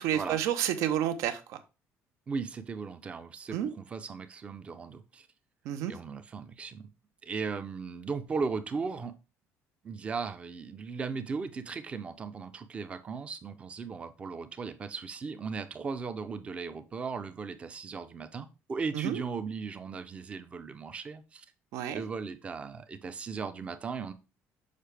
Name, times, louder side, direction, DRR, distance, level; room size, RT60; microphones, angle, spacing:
voice 1, 0.0-1.6 3.5-3.7 5.6-5.9 18.9-19.2 21.7-22.0, right 10 dB, 75° right, 0.8 m, -30 dB
voice 2, 2.3-5.3 5.9-6.9 7.2-9.1 9.8-21.5 21.9-24.1, right 5 dB, 20° right, 0.5 m, -37 dB
6.6 x 5.5 x 3.4 m
cardioid pair, 170°, 5 cm